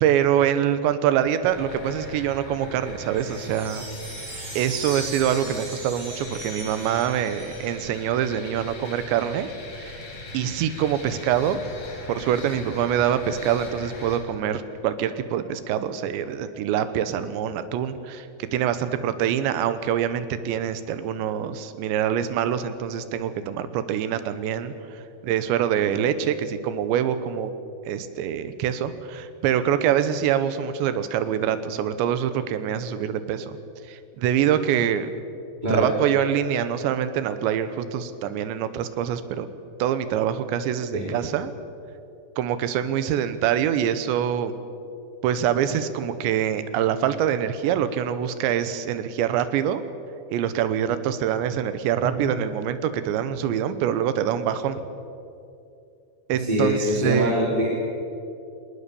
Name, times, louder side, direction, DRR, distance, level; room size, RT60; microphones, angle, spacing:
voice 1, 0.0-3.9 4.6-9.5 9.8-10.0 10.3-11.6 12.1-27.5 27.9-33.6 33.9-35.1 35.7-39.5 39.8-41.5 42.4-44.5 45.2-49.8 50.3-54.8 56.3-57.4, right 9 dB, 80° right, 11 dB, 3.3 m, -25 dB
sound 1, 1.5-14.2, left 2 dB, 40° left, 3.5 m, -40 dB
sound 2, 3.2-7.9, right 2 dB, 55° right, 8.5 m, -38 dB
voice 2, 56.4-57.6, equal, 10° right, -6 dB, 3.3 m, -24 dB
25.5 x 19.5 x 7.0 m, 2.6 s
omnidirectional pair, 5.2 m